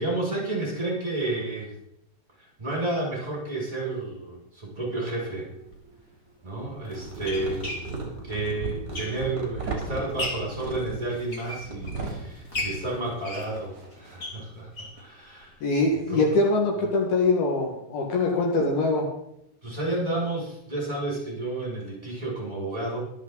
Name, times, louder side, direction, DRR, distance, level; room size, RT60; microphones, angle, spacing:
voice 1, 0.0-1.7 2.6-5.5 6.4-7.6 8.2-15.6 16.1-16.3 19.6-23.1, right 2 dB, 10° right, -5 dB, 6.7 m, -31 dB
sound 1, 5.0-6.0 6.7-14.5, right 4 dB, 25° right, 3.2 m, -37 dB
sound 2, 5.6-5.8 6.6-9.5 9.9-10.6 11.1-12.1 12.5-15.1 15.4-15.5 15.8-15.9 16.3-16.4, left 2 dB, 25° left, 2.1 m, -36 dB
voice 2, 15.6-19.1, left 3 dB, 65° left, 0 dB, 3.6 m, -23 dB
24.5 x 8.4 x 4.1 m, 0.78 s
omnidirectional pair, 5.0 m